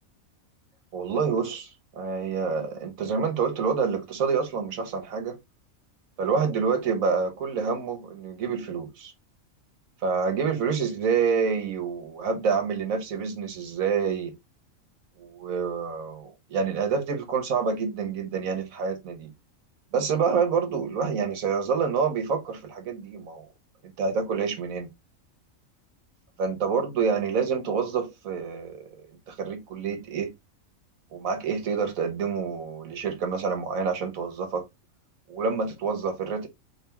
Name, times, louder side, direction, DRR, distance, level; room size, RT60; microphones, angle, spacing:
voice 1, 0.9-5.4 6.2-9.1 10.0-14.4 15.2-19.3 19.9-23.5 23.8-24.9 26.4-30.3 31.1-34.6 35.3-36.5, right 5 dB, 80° right, 1.5 m, -27 dB
3.4 x 3.3 x 2.9 m
omnidirectional pair, 1.4 m